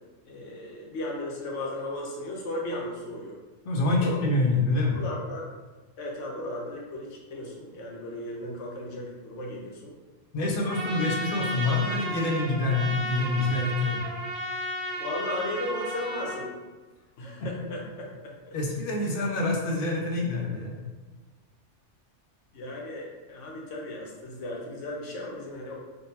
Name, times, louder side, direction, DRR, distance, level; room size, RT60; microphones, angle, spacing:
voice 1, 0.2-3.4 4.0-4.2 4.9-5.5 6.0-9.9 10.6-10.8 15.0-16.5 17.2-18.6 22.5-25.8, left 1 dB, 75° left, -2 dB, 1.0 m, -36 dB
voice 2, 3.7-5.0 10.3-14.0 18.5-20.8, left 2 dB, 60° left, -1 dB, 0.7 m, -26 dB
Trumpet, 10.7-16.4, equal, 60° right, 0.9 m, -33 dB
3.6 x 2.2 x 2.7 m, 1.2 s
omnidirectional pair, 1.3 m